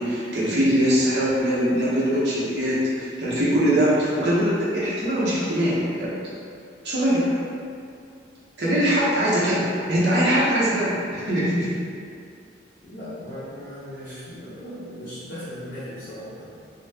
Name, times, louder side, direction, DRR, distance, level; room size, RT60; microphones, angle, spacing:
voice 1, 0.0-6.2 6.8-7.3 8.6-11.7, equal, 65° right, -8 dB, 0.8 m, -22 dB
voice 2, 12.8-16.5, equal, 50° left, -13 dB, 0.6 m, -37 dB
2.6 x 2.3 x 3.3 m, 2.4 s
head